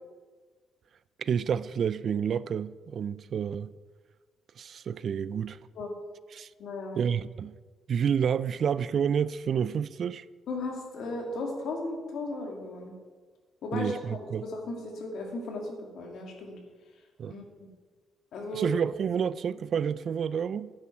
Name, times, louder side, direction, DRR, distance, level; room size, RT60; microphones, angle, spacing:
voice 1, 1.2-3.7 4.6-5.6 6.3-6.5 7.0-7.5 7.9-10.2 13.7-14.5 17.2-17.4 18.5-20.7, right 7 dB, 55° right, 0.3 m, -29 dB
voice 2, 6.6-7.0 10.5-12.9 13.6-16.6 17.2-17.4 18.3-18.7, left 2 dB, 70° left, 2.3 m, -36 dB
9.8 x 9.3 x 4.4 m
cardioid pair, 90°, 0 cm